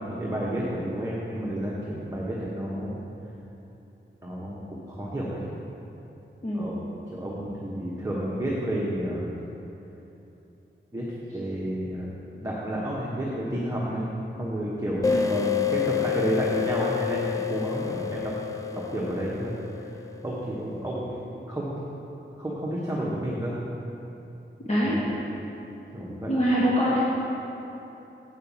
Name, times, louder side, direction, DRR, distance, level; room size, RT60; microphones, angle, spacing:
voice 1, 0.0-2.9 4.2-5.5 6.5-6.7 7.1-9.4 10.9-11.0 11.3-12.1 12.4-14.1 14.4-18.3 18.7-19.5 19.8-21.1 21.5-21.7 22.4-23.6 24.8-25.1 25.9-26.3, right 1 dB, 15° right, -6 dB, 1.1 m, -30 dB
sound 1, 15.0-20.4, left 8 dB, 15° left, 0.4 m, -29 dB
voice 2, 24.6-25.0 26.3-27.0, equal, 35° left, -7 dB, 1.2 m, -24 dB
8.1 x 5.6 x 7.2 m, 3.0 s
wide cardioid pair, 120°, 21 cm